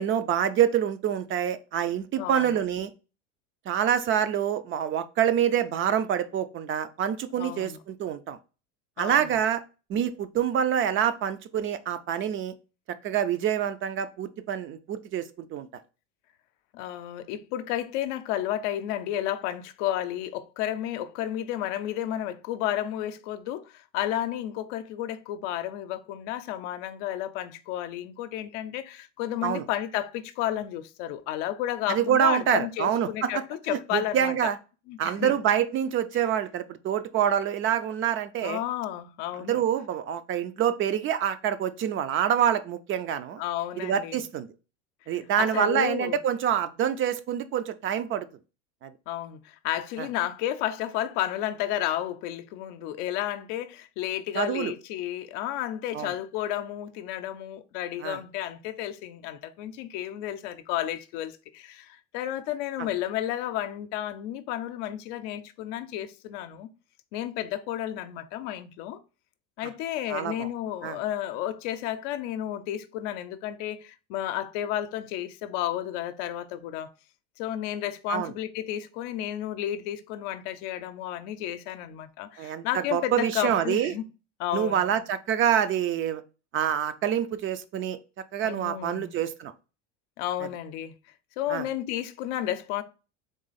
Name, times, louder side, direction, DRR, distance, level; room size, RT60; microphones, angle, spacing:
voice 1, 0.0-2.9 3.7-8.4 9.0-9.6 9.9-12.5 13.0-15.7 29.4-29.6 31.9-33.4 33.7-34.6 35.0-38.6 39.4-43.4 43.8-44.5 45.1-48.3 48.8-48.9 50.0-50.1 54.4-54.7 55.9-56.1 58.0-58.2 62.8-62.9 70.1-70.5 70.8-71.0 78.1-78.3 82.4-83.9 84.5-86.2 86.5-88.0 88.3-89.5 91.5-91.7, right 9 dB, 35° right, 0.5 m, -26 dB
voice 2, 2.1-2.5 7.4-7.8 9.0-9.3 16.7-34.5 34.9-35.3 38.4-39.6 43.4-44.2 45.4-46.2 49.1-66.7 67.1-69.0 69.6-76.9 77.4-84.0 84.4-85.1 88.4-89.1 90.2-90.9 91.4-92.8, left 12 dB, 70° left, 0.6 m, -32 dB
3.8 x 3.0 x 4.0 m
supercardioid pair, 115°, 37 cm